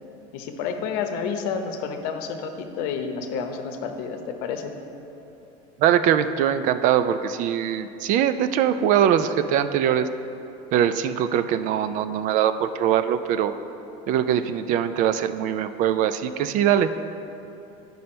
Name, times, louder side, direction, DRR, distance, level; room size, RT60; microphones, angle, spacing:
voice 1, 0.3-4.8, left 6 dB, 70° left, 5 dB, 0.8 m, -30 dB
voice 2, 5.8-10.1 10.7-13.5 14.1-16.9, right 9 dB, 55° right, 11 dB, 0.4 m, -22 dB
9.4 x 5.4 x 4.3 m, 2.9 s
supercardioid pair, 120°, 16 cm